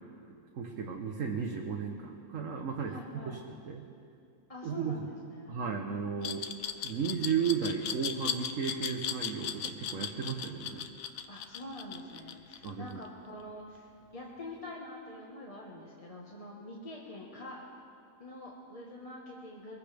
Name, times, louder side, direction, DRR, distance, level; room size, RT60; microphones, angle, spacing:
voice 1, 0.5-3.0 3.2-3.4 3.6-3.8 4.6-5.0 5.5-6.4 6.8-10.9 12.6-13.0, right 6 dB, 55° right, 1 dB, 1.1 m, -34 dB
voice 2, 2.9-3.4 4.5-5.7 11.3-17.6 18.2-19.8, left 1 dB, 25° left, -4 dB, 1.3 m, -45 dB
Glass, 6.2-13.1, left 8 dB, 65° left, 1.0 m, -37 dB
23.0 x 15.0 x 3.4 m, 2.5 s
omnidirectional pair, 1.8 m